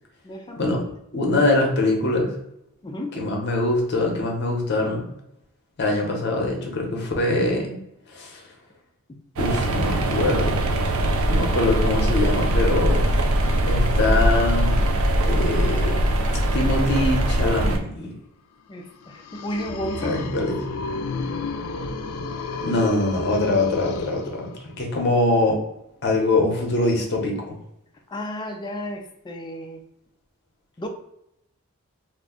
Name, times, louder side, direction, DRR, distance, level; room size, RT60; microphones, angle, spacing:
voice 1, 0.2-0.7 2.8-3.1 18.7-20.1 28.1-29.8 30.8-30.9, equal, 20° left, 3 dB, 0.4 m, -32 dB
voice 2, 1.1-2.3 3.1-5.1 5.8-7.8 8.1-8.4 9.4-10.6 11.3-13.0 13.6-14.8 15.2-18.1 20.0-20.6 22.6-25.6 26.0-27.6, left 2 dB, 50° left, 1 dB, 0.8 m, -23 dB
sound 1, 9.4-17.8, right 1 dB, 75° right, 0.5 m, -21 dB
sound 2, 18.9-24.8, left 4 dB, 85° left, 0.3 m, -32 dB
2.5 x 2.2 x 3.6 m, 0.79 s
head